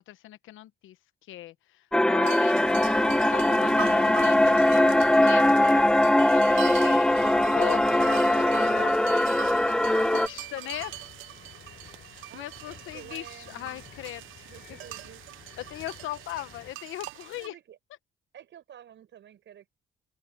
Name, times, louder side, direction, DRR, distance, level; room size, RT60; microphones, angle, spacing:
voice 1, 0.1-1.0 1.3-2.6 3.0-5.5 6.3-7.1 7.5-9.4 10.0-10.9 12.1-14.8 15.6-17.5, left 15 dB, 85° left, 1.0 m, -39 dB
sound 1, 1.9-10.3, left 1 dB, 5° left, 0.3 m, -21 dB
sound 2, 2.2-17.5, right 15 dB, 90° right, 0.8 m, -42 dB
sound 3, 2.6-16.7, left 8 dB, 55° left, 7.4 m, -44 dB
voice 2, 12.0-14.0 14.5-15.2 17.4-17.8 18.3-19.8, right 10 dB, 70° right, 6.6 m, -51 dB
open air
cardioid pair, 90°, 20 cm